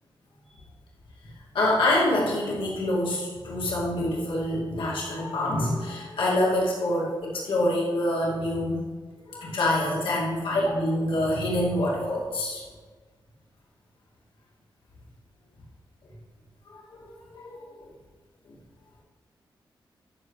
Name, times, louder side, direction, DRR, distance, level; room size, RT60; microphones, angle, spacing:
voice 1, 1.5-8.8 9.3-12.6 16.7-17.8 18.5-18.6, left 1 dB, 90° left, -5 dB, 2.3 m, -26 dB
14.0 x 6.3 x 3.2 m, 1.4 s
cardioid pair, 90°, 9 cm